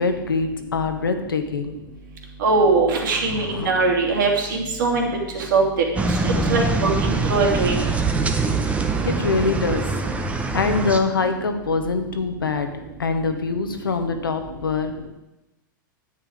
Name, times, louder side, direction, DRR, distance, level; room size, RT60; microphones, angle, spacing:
voice 1, 0.0-1.7 3.3-3.7 9.0-9.8 10.5-12.7 13.0-15.1, left 4 dB, 85° left, 7 dB, 1.5 m, -24 dB
voice 2, 2.4-5.1 5.3-5.6 6.2-7.7, right 3 dB, 65° right, 1 dB, 2.8 m, -21 dB
sound 1, 6.0-11.0, right 3 dB, 10° right, 1.0 m, -23 dB
10.0 x 8.9 x 5.1 m, 0.97 s
hypercardioid pair, 110°, 11 cm